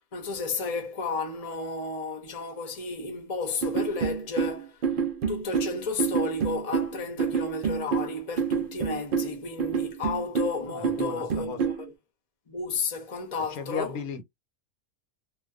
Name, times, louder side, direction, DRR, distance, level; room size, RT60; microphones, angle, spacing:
voice 1, 0.1-4.8 5.3-11.7 12.5-14.0, left 4 dB, 35° left, 0.7 m, -32 dB
sound 1, 3.6-11.8, right 6 dB, 55° right, 0.6 m, -28 dB
voice 2, 10.6-11.6 13.5-14.2, left 6 dB, 90° left, 1.3 m, -35 dB
2.6 x 2.2 x 2.3 m
omnidirectional pair, 1.5 m